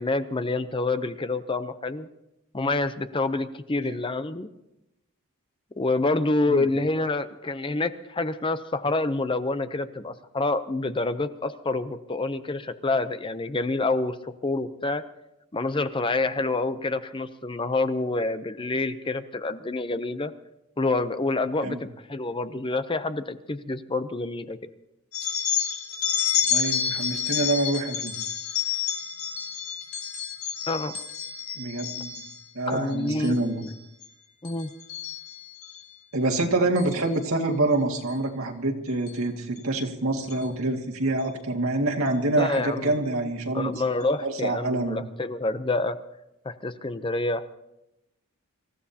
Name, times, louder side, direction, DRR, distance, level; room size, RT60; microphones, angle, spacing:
voice 1, 0.0-2.1 2.5-4.5 5.8-15.0 15.5-20.3 20.8-24.6 30.7-31.0 32.7-33.7 34.4-34.7 42.4-42.9 43.5-46.0 46.4-47.5, left 2 dB, 25° left, 11 dB, 0.6 m, -27 dB
sound 1, 25.1-32.4 32.9-33.3 33.6-34.1 34.4-35.8 36.8-37.0 37.9-38.1 39.1-39.2 39.6-39.7 40.2-40.4, left 8 dB, 70° left, 3.7 m, -29 dB
voice 2, 26.4-28.1 31.6-32.2 32.5-33.6 36.1-43.7 44.2-45.0, right 2 dB, 75° right, 1 dB, 2.1 m, -26 dB
26.0 x 15.0 x 2.8 m, 0.89 s
head